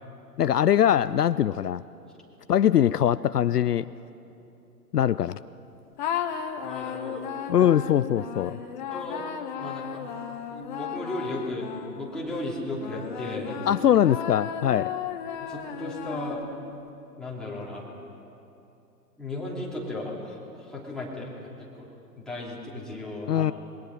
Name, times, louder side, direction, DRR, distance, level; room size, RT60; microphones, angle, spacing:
voice 1, 0.4-1.8 2.5-3.9 4.9-5.4 7.5-8.6 13.7-14.9 23.3-23.5, left 10 dB, 70° left, 16 dB, 0.6 m, -22 dB
sound 1, 6.0-12.2 12.8-16.7, left 8 dB, 30° left, 1.2 m, -35 dB
voice 2, 6.6-7.3 7.6-7.7 8.9-9.3 9.6-10.0 10.5-11.7 12.0-13.6 15.4-16.4 17.2-17.9 19.2-21.3 21.6-21.9 22.2-23.5, left 1 dB, ahead, -5 dB, 3.1 m, -35 dB
26.5 x 21.5 x 5.9 m, 2.8 s
figure-of-eight pair, 125°, 49 cm